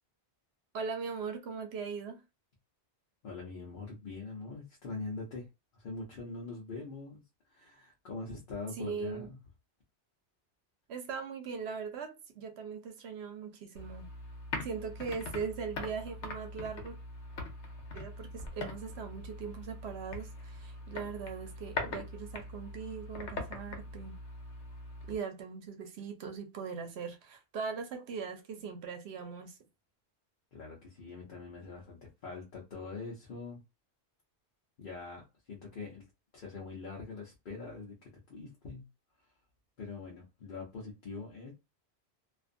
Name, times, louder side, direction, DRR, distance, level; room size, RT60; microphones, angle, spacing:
voice 1, 0.7-2.2 8.7-9.3 10.9-14.1 14.6-17.0 17.9-24.1 25.1-29.6, right 6 dB, 75° right, 0.8 m, -40 dB
voice 2, 3.2-5.5 5.7-7.2 7.5-9.4 30.5-33.6 34.8-36.0 36.3-38.8 39.8-41.5, left 3 dB, 50° left, 0.9 m, -43 dB
sound 1, 13.7-25.2, left 2 dB, 85° left, 1.0 m, -42 dB
2.5 x 2.4 x 2.4 m
omnidirectional pair, 1.1 m